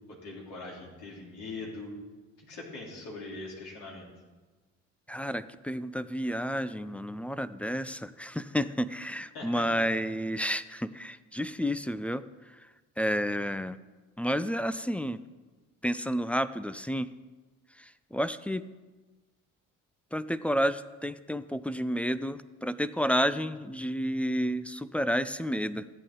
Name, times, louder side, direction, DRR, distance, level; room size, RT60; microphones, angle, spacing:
voice 1, 0.1-2.0 2.4-4.1 9.3-9.8, left 3 dB, 75° left, -3 dB, 3.6 m, -41 dB
voice 2, 5.1-13.8 14.2-15.2 15.8-17.1 17.7-18.6 20.1-25.9, equal, 5° left, 14 dB, 0.3 m, -31 dB
14.0 x 8.9 x 3.8 m, 1.3 s
hypercardioid pair, 65°, 39 cm